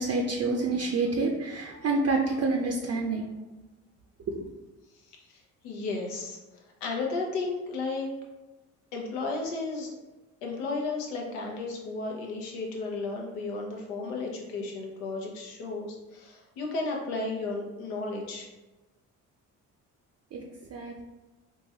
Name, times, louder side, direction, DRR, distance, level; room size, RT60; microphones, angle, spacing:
voice 1, 0.0-3.3 4.3-4.4 20.3-20.4 20.7-21.0, right 3 dB, 40° right, 0 dB, 0.5 m, -28 dB
voice 2, 5.1-6.4 6.8-8.1 8.9-9.9 10.4-18.5, left 3 dB, 85° left, -1 dB, 0.8 m, -34 dB
3.8 x 2.5 x 2.8 m, 1.1 s
supercardioid pair, 65°, 41 cm